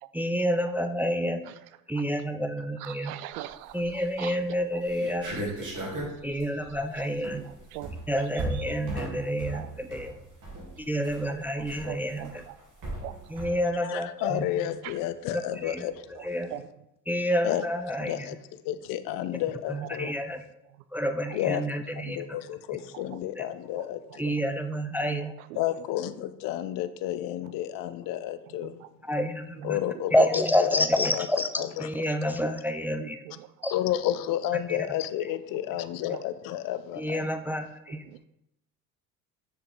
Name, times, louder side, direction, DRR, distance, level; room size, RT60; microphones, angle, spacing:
voice 1, 0.1-1.4 1.9-3.2 3.7-5.7 6.2-7.4 8.1-10.1 10.9-12.3 13.3-14.7 15.3-16.5 17.1-18.3 19.7-20.4 20.9-22.4 23.4-23.5 24.2-25.3 29.0-29.8 30.1-33.2 33.6-33.7 34.7-34.8 35.2-35.3 36.9-38.0, equal, 5° right, 8 dB, 0.3 m, -29 dB
voice 2, 1.2-1.5 1.9-2.0 2.8-5.4 5.7-6.4 6.9-7.9 8.5-8.6 9.0-9.7 11.3-12.5 13.0-13.4 14.8-15.0 16.1-16.7 17.5-17.6 19.2-20.1 20.7-20.8 21.3-21.4 22.9-23.2 23.7-24.2 25.2-25.9 27.4-27.6 28.2-29.2 29.6-30.1 33.0-33.7 35.3-35.4 35.7-36.2 37.9-38.2, right 14 dB, 65° right, 14 dB, 0.6 m, -44 dB
sound 1, 3.7-4.1 4.5-4.6 4.8-13.5, right 1 dB, 40° right, 3.1 m, -37 dB
voice 3, 13.9-15.9 17.4-17.7 18.1-18.3 18.7-20.1 21.3-21.7 22.1-24.3 25.6-28.8 29.6-30.4 30.7-30.8 31.1-31.3 31.6-31.7 33.7-37.2, left 12 dB, 45° left, 12 dB, 0.6 m, -31 dB
6.9 x 6.6 x 3.8 m, 0.84 s
figure-of-eight pair, 60°, 46 cm